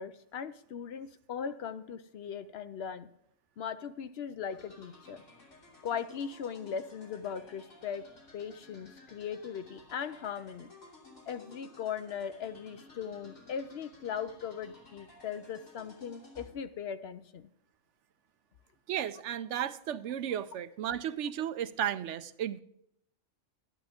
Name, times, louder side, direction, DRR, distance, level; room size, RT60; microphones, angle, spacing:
voice 1, 0.0-3.1 3.6-5.2 5.8-8.1 8.3-10.7 11.3-17.5, left 7 dB, 65° left, 12 dB, 0.8 m, -39 dB
sound 1, 4.5-16.5, left 2 dB, 90° left, 3.4 m, -56 dB
voice 2, 18.9-22.6, right 10 dB, 80° right, 13 dB, 0.9 m, -34 dB
12.5 x 11.0 x 3.6 m, 0.74 s
omnidirectional pair, 1.2 m